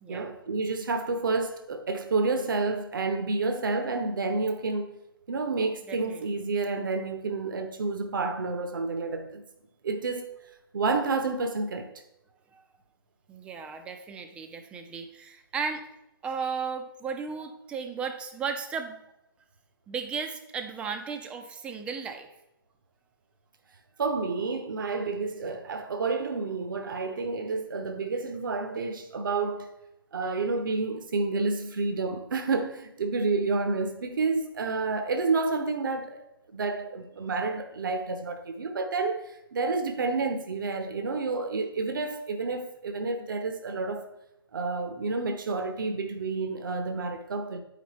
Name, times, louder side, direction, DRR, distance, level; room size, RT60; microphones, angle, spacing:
voice 1, 0.1-4.9 5.3-9.4 9.8-10.3 10.7-11.9 24.0-29.7 30.1-36.2 36.5-44.1 44.5-47.6, right 3 dB, 60° right, 0.8 m, -29 dB
voice 2, 5.9-6.2 12.5-12.6 13.3-15.8 16.2-19.0 19.9-22.3, right 5 dB, 10° right, 0.5 m, -35 dB
8.5 x 5.1 x 4.2 m
figure-of-eight pair, 135°, 12 cm